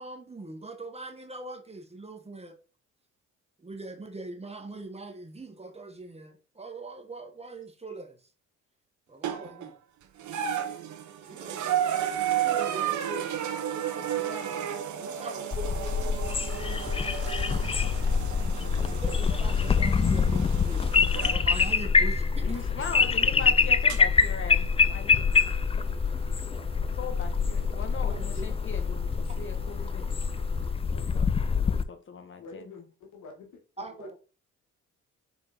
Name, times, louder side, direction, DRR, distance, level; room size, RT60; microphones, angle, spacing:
voice 1, 0.0-2.5 3.6-8.2 9.1-9.7 11.3-11.6 12.3-13.3 14.9-16.2 17.6-17.7 18.3-22.6 28.1-28.6 33.8-34.1, right 2 dB, 20° right, 1.4 m, -42 dB
sound 1, 9.2-9.7 10.2-21.4 22.5-22.6 23.9-24.0, right 10 dB, 75° right, 1.2 m, -32 dB
voice 2, 14.0-14.7 22.4-25.3 27.0-30.1 30.8-32.8, left 5 dB, 40° left, 1.5 m, -40 dB
sound 2, 15.5-31.8, left 5 dB, 20° left, 0.4 m, -25 dB
sound 3, 16.5-30.7, right 3 dB, 55° right, 1.9 m, -49 dB
voice 3, 32.4-34.1, left 3 dB, 85° left, 2.3 m, -47 dB
6.2 x 4.3 x 4.4 m
cardioid pair, 90°, 30 cm